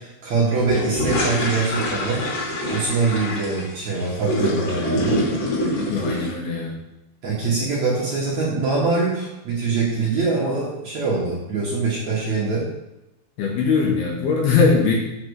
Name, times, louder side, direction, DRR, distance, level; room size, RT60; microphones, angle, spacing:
voice 1, 0.0-2.2 2.7-5.3 6.0-6.1 7.2-12.7, right 3 dB, 70° right, -5 dB, 1.6 m, -23 dB
sound 1, 0.6-6.3, left 1 dB, 50° left, 3.7 m, -25 dB
voice 2, 5.9-6.8 13.4-14.9, left 5 dB, 70° left, -1 dB, 2.5 m, -20 dB
6.6 x 6.0 x 6.4 m, 0.93 s
omnidirectional pair, 5.7 m